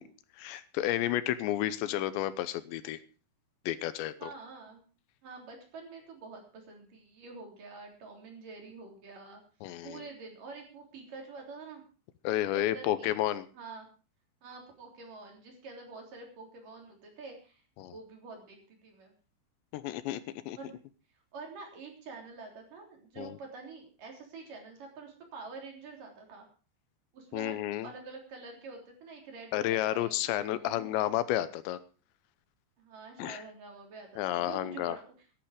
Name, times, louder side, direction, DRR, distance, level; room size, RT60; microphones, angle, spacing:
voice 1, 0.4-3.0 3.7-4.3 9.6-10.0 12.2-13.4 17.8-17.9 19.7-20.2 20.5-20.6 23.2-23.4 27.3-27.9 29.5-31.8 33.2-33.4 34.2-35.0, left 13 dB, 85° left, 14 dB, 3.1 m, -31 dB
voice 2, 4.2-4.8 5.2-9.4 9.8-11.8 12.5-13.1 13.5-13.9 14.4-17.6 17.9-19.1 20.6-20.8 21.3-26.5 27.1-30.9 32.8-35.1, right 4 dB, 50° right, 2 dB, 4.8 m, -47 dB
16.0 x 11.5 x 5.0 m, 0.36 s
omnidirectional pair, 5.1 m